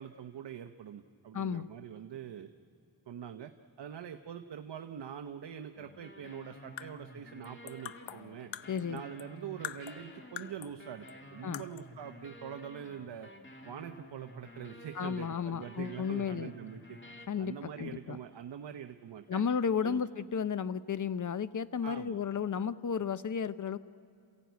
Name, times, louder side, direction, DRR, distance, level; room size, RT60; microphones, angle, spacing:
voice 1, 0.0-2.5 3.1-3.5 3.8-8.5 8.9-13.3 13.6-19.4 19.8-20.0 21.8-22.2, right 8 dB, 70° right, 7 dB, 0.8 m, -44 dB
voice 2, 1.3-1.7 8.7-9.0 11.4-11.6 15.0-16.5 17.3-18.2 19.3-23.8, left 7 dB, 45° left, 14 dB, 0.7 m, -33 dB
sound 1, 5.8-17.3, left 1 dB, 25° left, 2.1 m, -52 dB
sound 2, 6.5-9.3 9.6-10.8 11.1-11.2 11.5-12.0, left 10 dB, 85° left, 0.7 m, -45 dB
28.0 x 15.5 x 9.3 m, 2.7 s
wide cardioid pair, 105°, 44 cm